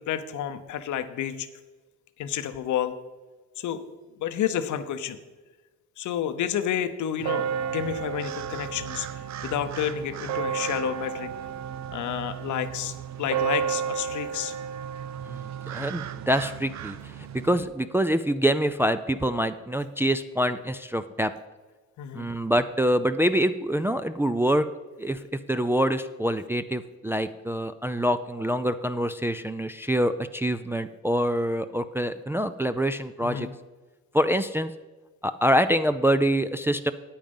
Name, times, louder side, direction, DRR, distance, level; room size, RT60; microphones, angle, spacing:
voice 1, 0.1-1.5 2.2-3.0 3.6-3.8 4.2-5.2 6.0-9.1 9.4-11.3 11.9-14.6 22.0-22.3 33.2-33.5, left 10 dB, 75° left, 11 dB, 0.9 m, -30 dB
sound 1, 7.2-17.6, right 8 dB, 65° right, 0.6 m, -33 dB
voice 2, 15.2-21.3 22.1-24.7 25.0-25.2 25.5-33.5 34.1-34.7 35.2-36.9, equal, 10° right, 9 dB, 0.4 m, -25 dB
9.3 x 8.8 x 5.4 m, 1.2 s
cardioid pair, 90°, 30 cm